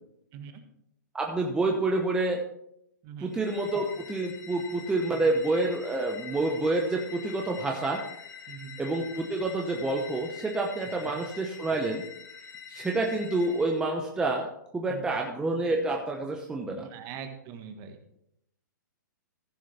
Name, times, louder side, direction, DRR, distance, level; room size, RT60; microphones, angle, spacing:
voice 1, 1.1-2.4 3.2-8.0 8.8-12.0 12.7-14.5 14.7-16.9, right 2 dB, 10° right, 1 dB, 0.9 m, -28 dB
voice 2, 3.0-3.4 5.1-5.3 8.5-8.8 11.0-11.2 14.9-15.0 16.8-18.0, right 7 dB, 30° right, 7 dB, 1.5 m, -42 dB
sound 1, 3.3-13.8, left 8 dB, 80° left, 2.5 m, -45 dB
15.0 x 6.2 x 4.3 m, 0.78 s
hypercardioid pair, 135°, 11 cm